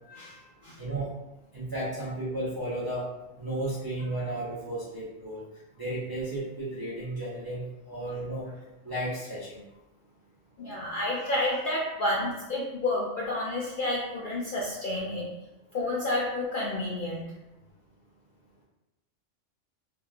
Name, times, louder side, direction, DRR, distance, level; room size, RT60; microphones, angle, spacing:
voice 1, 0.1-0.8 10.6-15.3 15.7-17.3, left 1 dB, 65° left, -5 dB, 0.5 m, -30 dB
voice 2, 0.8-1.1 1.5-3.1 3.4-5.5 5.8-8.5 8.8-9.6, right 1 dB, 35° right, -9 dB, 0.3 m, -33 dB
3.2 x 2.3 x 2.4 m, 0.99 s
omnidirectional pair, 1.3 m